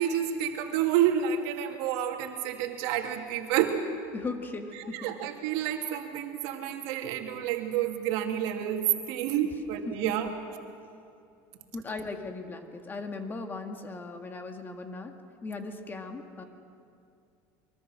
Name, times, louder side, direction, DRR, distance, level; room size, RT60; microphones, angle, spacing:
voice 1, 0.0-3.8 4.9-10.3, right 10 dB, 70° right, 3 dB, 2.5 m, -29 dB
voice 2, 4.1-5.1 9.9-10.3 11.7-15.1 15.4-16.4, left 3 dB, 20° left, 5 dB, 1.8 m, -38 dB
23.5 x 23.0 x 6.4 m, 2.5 s
supercardioid pair, 125°, 9 cm